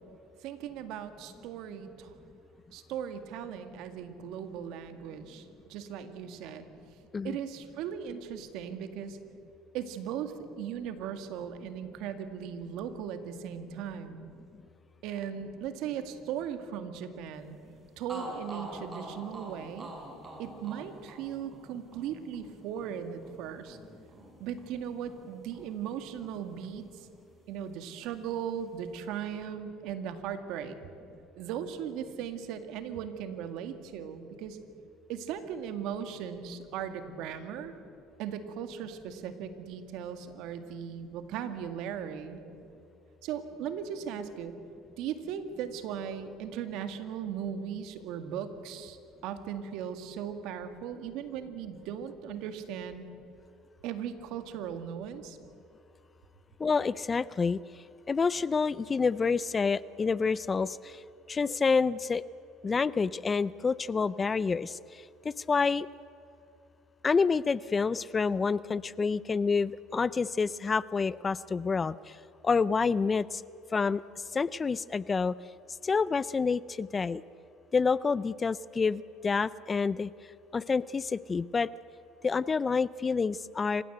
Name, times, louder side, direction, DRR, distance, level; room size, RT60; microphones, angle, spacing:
voice 1, 0.4-2.1 2.7-6.7 7.2-9.2 9.7-14.3 15.0-17.6 18.0-19.9 20.4-23.8 24.4-27.1 27.5-30.8 31.4-34.6 35.1-37.8 38.2-42.4 43.2-44.5 45.0-49.0 49.2-53.1 53.8-55.4, right 8 dB, 70° right, 8 dB, 2.0 m, -38 dB
sound 1, 17.7-17.8 18.1-26.0 26.2-27.4, right 1 dB, 30° right, 6.1 m, -46 dB
voice 2, 56.6-57.6 58.1-61.0 61.3-62.2 62.6-64.8 65.2-65.9 67.0-72.0 72.4-73.4 73.7-74.0 74.3-75.3 75.8-77.2 77.7-80.1 80.5-81.7 82.2-83.8, left 5 dB, 25° left, 19 dB, 0.5 m, -28 dB
27.0 x 16.0 x 8.0 m, 2.8 s
supercardioid pair, 100°, 0 cm